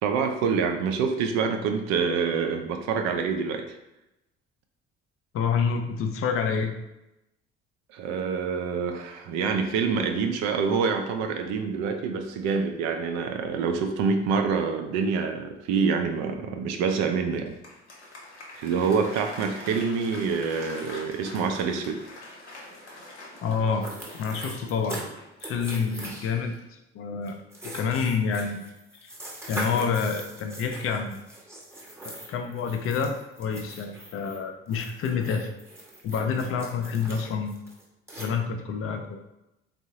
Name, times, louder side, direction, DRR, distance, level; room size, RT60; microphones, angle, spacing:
voice 1, 0.0-3.7 7.9-17.5 18.5-22.0, right 5 dB, 55° right, 5 dB, 0.4 m, -26 dB
voice 2, 5.3-6.7 23.4-23.9 24.1-25.0 25.4-27.3 27.6-28.7 29.0-29.1 29.5-31.2 32.0-35.5 36.0-37.6 38.2-39.2, left 6 dB, 40° left, 5 dB, 0.4 m, -28 dB
Applause, 17.3-25.5, left 2 dB, 85° left, 0.6 m, -44 dB
sound 1, 23.8-25.0 25.4-26.5 27.2-34.4 34.7-38.2, right 1 dB, 10° right, 0.8 m, -41 dB
3.5 x 2.0 x 2.7 m, 0.93 s
figure-of-eight pair, 50°, 34 cm